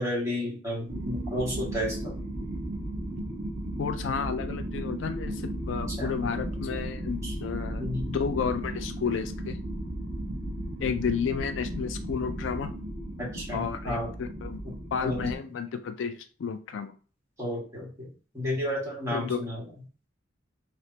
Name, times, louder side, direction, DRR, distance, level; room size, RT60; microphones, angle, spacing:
voice 1, 0.0-2.2 6.0-6.1 7.2-7.3 7.8-8.2 13.3-14.1 14.6-15.2 17.4-18.1 18.3-19.6, left 1 dB, 15° right, -6 dB, 1.6 m, -32 dB
sound 1, 0.9-15.3, right 1 dB, 55° right, 1.1 m, -35 dB
voice 2, 3.8-9.6 10.8-12.7 13.5-14.6 14.9-16.9 19.1-19.4, left 6 dB, 70° left, 9 dB, 0.3 m, -32 dB
3.2 x 2.9 x 2.8 m, 0.38 s
head